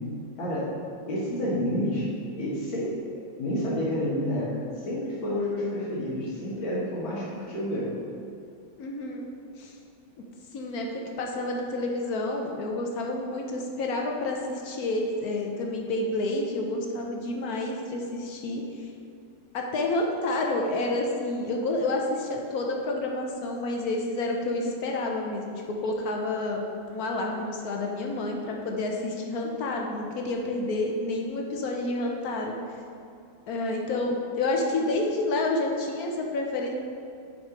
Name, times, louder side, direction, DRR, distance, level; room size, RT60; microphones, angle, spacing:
voice 1, 0.4-0.7 1.1-2.1 2.4-3.0 3.4-7.9, left 1 dB, 85° left, -6 dB, 2.4 m, -29 dB
voice 2, 8.8-9.3 9.6-9.7 10.5-10.9 11.2-18.9 19.5-32.5 33.5-36.7, left 2 dB, 65° left, 1 dB, 1.0 m, -29 dB
7.5 x 4.3 x 4.5 m, 2.5 s
omnidirectional pair, 2.1 m